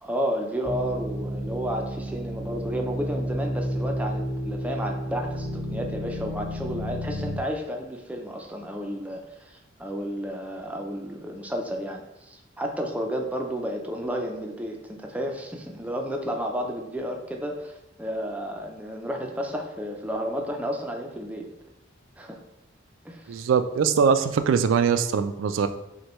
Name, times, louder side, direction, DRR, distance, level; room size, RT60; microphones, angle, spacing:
voice 1, 0.0-21.5 22.2-22.4 23.0-23.4, equal, 10° right, 2 dB, 0.4 m, -32 dB
sound 1, 0.6-7.4, equal, 15° left, 0.8 m, -31 dB
voice 2, 23.3-25.7, right 6 dB, 80° right, 10 dB, 0.3 m, -22 dB
6.1 x 2.2 x 3.0 m, 0.90 s
head